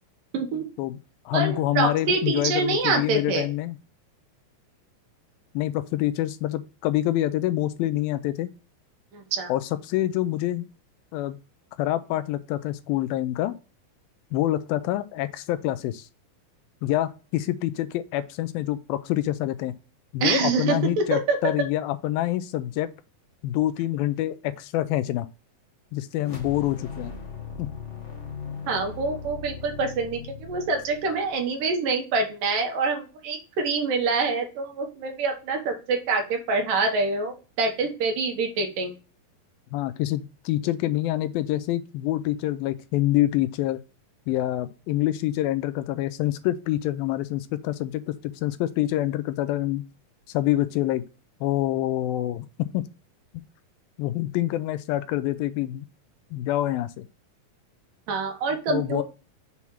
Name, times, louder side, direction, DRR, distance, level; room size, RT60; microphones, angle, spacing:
voice 1, 0.3-0.6 1.3-3.5 9.1-9.5 20.2-21.4 28.7-38.9 58.1-59.0, right 4 dB, 70° right, 2.9 m, -26 dB
voice 2, 1.3-3.8 5.5-8.5 9.5-10.7 11.1-11.4 11.8-13.5 14.3-16.1 16.8-19.7 20.1-22.9 23.4-25.3 25.9-27.1 27.6-27.7 39.7-43.8 44.3-49.8 50.3-51.0 51.4-52.9 54.0-55.9 56.3-57.0 58.7-59.0, left 14 dB, 85° left, 2.4 m, -26 dB
sound 1, 26.2-31.6, left 5 dB, 55° left, 0.7 m, -39 dB
7.1 x 3.1 x 5.5 m
omnidirectional pair, 4.1 m